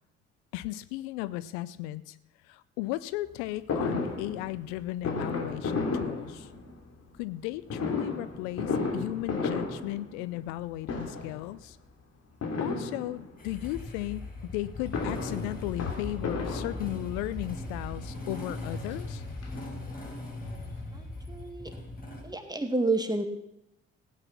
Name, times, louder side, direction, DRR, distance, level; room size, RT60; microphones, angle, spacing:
voice 1, 0.5-2.2 2.4-6.5 7.2-11.8 12.6-14.3 14.5-19.2, left 16 dB, 75° left, 16 dB, 0.5 m, -35 dB
Fireworks, 3.7-6.9 7.7-10.6 10.8-11.5 12.4-13.5 14.6-17.3 18.1-18.2 18.5-18.6 18.9-20.1 20.5-20.6 20.7-20.8, left 4 dB, 50° left, 2.8 m, -33 dB
Motorcycle / Engine starting, 13.4-22.2, left 2 dB, 25° left, 5.4 m, -39 dB
voice 2, 20.9-21.7 22.2-23.2, right 2 dB, 10° right, 7 dB, 2.2 m, -30 dB
15.5 x 8.9 x 5.9 m, 0.84 s
hypercardioid pair, 45°, 32 cm